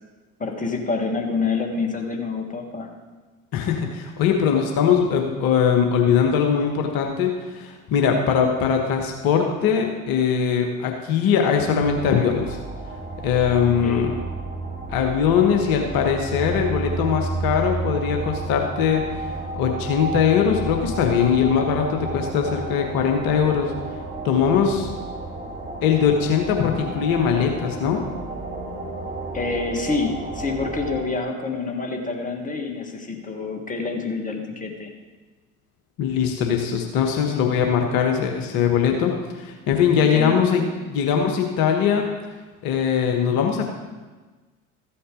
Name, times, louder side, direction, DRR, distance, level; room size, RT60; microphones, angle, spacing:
voice 1, 0.4-2.9 13.8-14.2 29.3-34.9 39.9-40.4, left 4 dB, 20° left, 3 dB, 1.6 m, -27 dB
voice 2, 3.5-12.6 13.2-14.1 14.9-19.3 19.5-23.7 24.2-24.9 25.8-28.0 36.0-40.6 40.9-42.1 42.6-43.6, left 7 dB, 50° left, 3 dB, 1.4 m, -21 dB
sound 1, 11.9-31.0, right 3 dB, 20° right, 3.0 m, -32 dB
14.0 x 8.5 x 3.8 m, 1.3 s
figure-of-eight pair, 65°, 43 cm